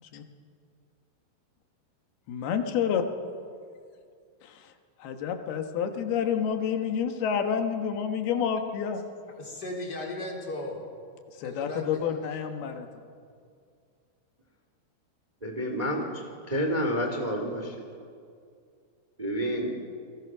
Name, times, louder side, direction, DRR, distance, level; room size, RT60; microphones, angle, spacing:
voice 1, 2.3-3.1 4.4-4.7 5.0-9.0 11.4-12.9, left 7 dB, 85° left, 6 dB, 3.4 m, -29 dB
voice 2, 9.4-10.8 11.4-12.2, left 2 dB, 25° left, 0 dB, 3.9 m, -36 dB
voice 3, 15.4-16.0 16.5-17.8 19.2-19.7, equal, 15° right, 3 dB, 2.0 m, -29 dB
29.0 x 21.5 x 6.1 m, 2.3 s
omnidirectional pair, 4.3 m